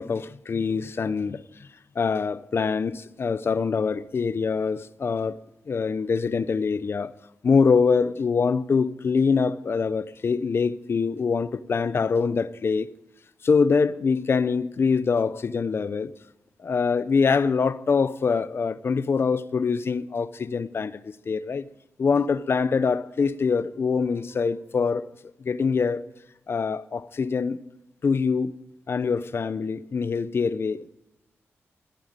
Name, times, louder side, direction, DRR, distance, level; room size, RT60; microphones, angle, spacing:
voice 1, 0.0-1.4 2.0-7.1 7.4-12.9 13.4-16.1 16.6-21.7 22.0-25.1 25.4-26.0 26.5-27.6 28.0-28.6 28.9-30.8, left 5 dB, 50° left, 0.7 m, -24 dB
14.5 x 9.3 x 8.9 m
wide cardioid pair, 100°, 5 cm